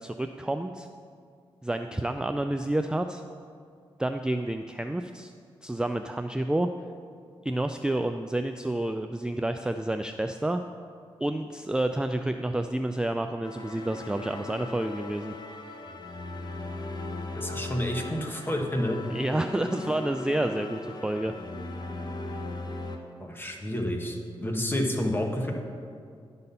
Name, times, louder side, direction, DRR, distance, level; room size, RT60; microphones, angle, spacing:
voice 1, 0.0-0.9 1.6-3.2 4.0-5.3 5.6-6.7 7.4-10.6 11.2-15.3 19.1-21.3, right 1 dB, 10° right, 7 dB, 0.3 m, -29 dB
sound 1, 13.4-23.0, left 2 dB, 45° left, 0.9 m, -38 dB
voice 2, 17.3-19.0 23.2-25.5, left 1 dB, 20° left, 2 dB, 1.3 m, -29 dB
11.5 x 4.2 x 5.4 m, 2.3 s
cardioid pair, 70°, 10 cm